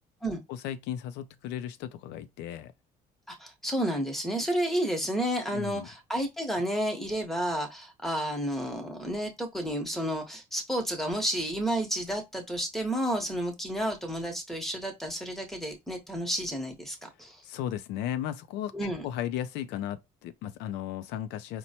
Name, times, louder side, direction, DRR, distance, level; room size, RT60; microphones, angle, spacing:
voice 1, 0.5-2.7 5.5-5.9 17.4-21.6, left 11 dB, 85° left, 0.4 m, -35 dB
voice 2, 3.3-17.4 18.7-19.1, right 1 dB, ahead, 0.9 m, -31 dB
4.3 x 2.1 x 2.8 m
cardioid pair, 110°, 17 cm